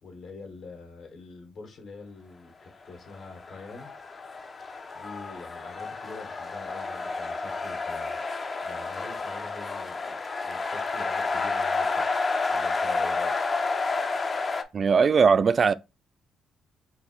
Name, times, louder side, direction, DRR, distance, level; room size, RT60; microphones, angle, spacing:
voice 1, 0.0-3.9 4.9-8.4 8.6-10.2 10.5-12.1 12.5-13.4, left 3 dB, 65° left, 1.6 m, -45 dB
sound 1, 3.1-14.6, left 3 dB, 35° left, 0.6 m, -30 dB
voice 2, 14.7-15.7, right 5 dB, 45° right, 0.3 m, -19 dB
3.9 x 2.7 x 4.4 m
cardioid pair, 90°, 0 cm